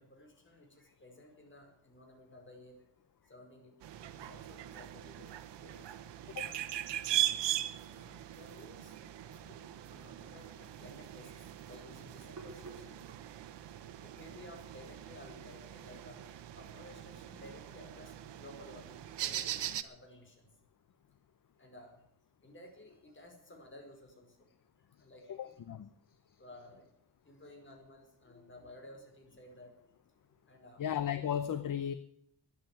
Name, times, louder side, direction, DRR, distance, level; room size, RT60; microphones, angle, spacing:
voice 1, 0.0-2.8 3.2-3.7 4.1-5.3 5.6-5.9 7.9-8.9 9.2-9.6 9.8-13.3 14.0-16.3 16.5-20.5 21.6-22.0 22.4-24.4 25.0-25.5 26.4-26.9 27.2-29.7 30.5-30.8, left 1 dB, 30° left, 2 dB, 5.1 m, -55 dB
sound 1, 3.8-19.8, right 13 dB, 85° right, 1.1 m, -40 dB
Hands, 12.4-17.5, right 3 dB, 45° right, 3.6 m, -57 dB
voice 2, 25.3-25.9 30.8-31.9, left 9 dB, 50° left, 13 dB, 0.8 m, -35 dB
13.0 x 10.5 x 9.2 m, 0.74 s
wide cardioid pair, 130°, 41 cm